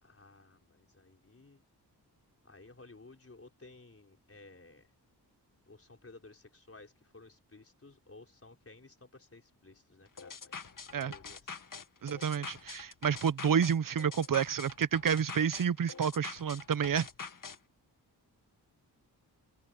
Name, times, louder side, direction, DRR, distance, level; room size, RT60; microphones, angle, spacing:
voice 1, 0.0-1.6 2.4-4.9 5.7-11.7, left 3 dB, 35° left, 4.7 m, -56 dB
sound 1, 10.2-17.6, left 5 dB, 50° left, 1.9 m, -45 dB
voice 2, 12.0-17.1, right 7 dB, 55° right, 0.8 m, -29 dB
cardioid pair, 60°, 41 cm